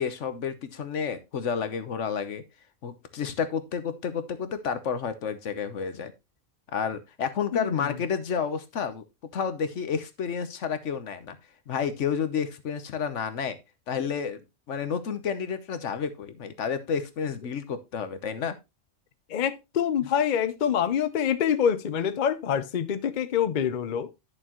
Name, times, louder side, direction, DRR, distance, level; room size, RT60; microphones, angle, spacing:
voice 1, 0.0-2.4 2.8-6.1 6.7-9.0 9.3-11.4 11.7-13.6 13.9-14.4 14.7-18.6, left 6 dB, 75° left, 1.3 m, -30 dB
voice 2, 7.5-8.0 19.3-24.1, left 8 dB, 50° left, 0.7 m, -26 dB
11.0 x 6.6 x 3.0 m
omnidirectional pair, 1.3 m